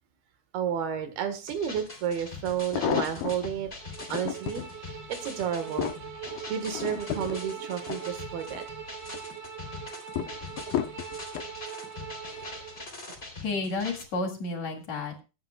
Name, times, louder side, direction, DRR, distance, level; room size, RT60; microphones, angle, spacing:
voice 1, 0.5-3.7 4.1-5.9 6.3-8.6 11.0-11.1 13.1-13.2, right 8 dB, 80° right, 8 dB, 3.5 m, -31 dB
sound 1, 1.5-14.0, left 3 dB, 15° left, 3.3 m, -43 dB
sound 2, 1.8-1.9 2.5-3.5 4.0-4.7 5.2-8.6 9.0-9.5 10.2-11.5 12.3-12.6 12.9-13.0, left 12 dB, 80° left, 2.6 m, -33 dB
Bowed string instrument, 3.7-12.9, right 7 dB, 50° right, 2.4 m, -41 dB
voice 2, 13.4-15.2, left 3 dB, 50° left, 2 dB, 3.2 m, -31 dB
23.0 x 9.0 x 2.4 m, 0.30 s
omnidirectional pair, 4.4 m